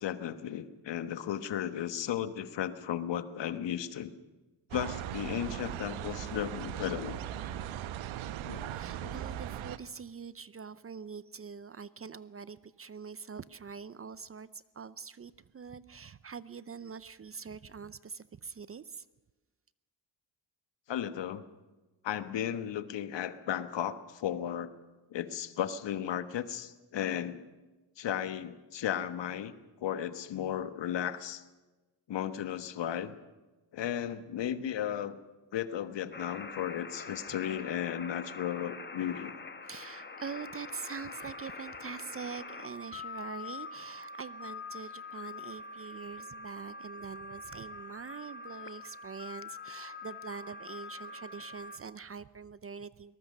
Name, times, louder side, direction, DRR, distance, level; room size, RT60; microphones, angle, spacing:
voice 1, 0.0-4.1 4.7-7.2 8.4-8.7 9.0-9.2 20.9-21.4 22.0-24.7 25.1-27.4 28.0-29.5 29.8-31.4 32.1-33.1 33.7-35.2 35.5-39.3, left 10 dB, 65° left, 12 dB, 1.4 m, -35 dB
sound 1, 4.7-9.8, right 11 dB, 85° right, 1.0 m, -39 dB
voice 2, 8.7-19.1 39.7-53.2, right 6 dB, 30° right, 17 dB, 0.6 m, -44 dB
sound 2, 36.1-51.8, left 3 dB, 20° left, 1.6 m, -44 dB
22.5 x 19.5 x 6.6 m, 1.2 s
cardioid pair, 95°, 47 cm